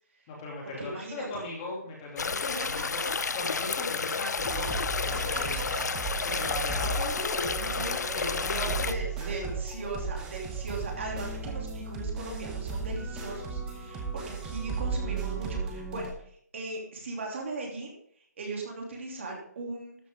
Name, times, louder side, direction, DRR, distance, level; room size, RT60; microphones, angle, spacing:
voice 1, 0.3-3.0 3.3-5.7 6.2-8.9 9.2-9.5, left 2 dB, 20° left, -3 dB, 2.7 m, -38 dB
voice 2, 0.8-1.4 2.5-3.1 5.3-5.8 8.8-17.9 18.4-20.0, right 3 dB, 45° right, 0 dB, 3.0 m, -38 dB
sound 1, 2.2-9.0, left 5 dB, 70° left, 0.7 m, -31 dB
sound 2, 4.4-16.1, right 4 dB, 5° right, 0.8 m, -35 dB
12.5 x 7.9 x 3.7 m, 0.62 s
hypercardioid pair, 175°, 9 cm